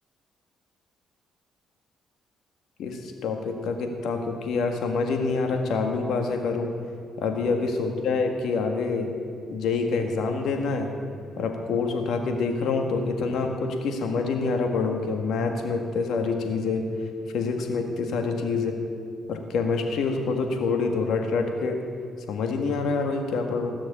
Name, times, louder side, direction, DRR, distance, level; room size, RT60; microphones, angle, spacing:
voice 1, 2.8-6.7 7.2-9.1 9.5-10.9 11.4-16.9 17.3-18.7 19.3-21.8 22.3-23.7, left 4 dB, 75° left, 4 dB, 1.8 m, -26 dB
17.5 x 6.5 x 8.7 m, 2.3 s
cardioid pair, 90°, 0 cm